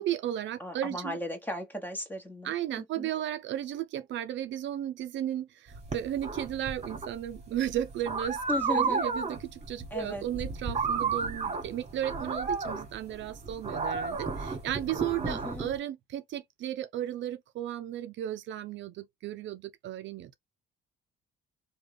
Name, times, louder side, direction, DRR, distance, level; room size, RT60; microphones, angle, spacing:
voice 1, 0.0-1.2 2.4-20.3, right 11 dB, 70° right, 0.4 m, -34 dB
voice 2, 0.6-3.1 8.5-9.0 9.9-10.2 15.2-15.7, left 1 dB, 10° left, 1.1 m, -36 dB
sound 1, 5.7-15.8, right 4 dB, 30° right, 1.4 m, -33 dB
3.2 x 2.3 x 3.3 m
cardioid pair, 90°, 20 cm